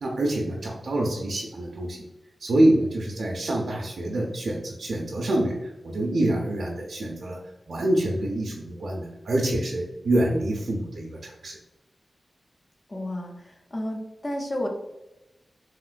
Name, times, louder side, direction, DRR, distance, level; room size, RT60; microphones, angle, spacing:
voice 1, 0.0-2.0 2.4-7.4 7.7-11.6, right 1 dB, 75° right, -2 dB, 0.4 m, -26 dB
voice 2, 12.9-14.7, left 1 dB, 45° left, 1 dB, 0.6 m, -32 dB
2.9 x 2.8 x 2.4 m, 0.95 s
cardioid pair, 40°, 0 cm